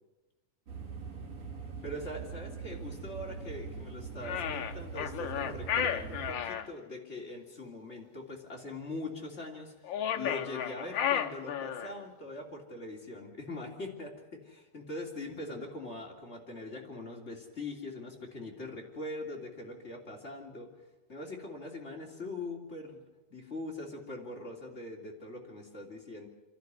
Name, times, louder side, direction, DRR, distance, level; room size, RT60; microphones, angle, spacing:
sound 1, 0.7-6.3, right 5 dB, 55° right, 5.6 m, -42 dB
voice 1, 1.8-20.7 21.1-23.0 23.3-26.3, left 2 dB, 20° left, -1 dB, 3.0 m, -42 dB
sound 2, 4.2-6.7 9.8-12.0, left 9 dB, 75° left, 1.1 m, -33 dB
27.0 x 12.0 x 9.8 m, 1.1 s
omnidirectional pair, 3.6 m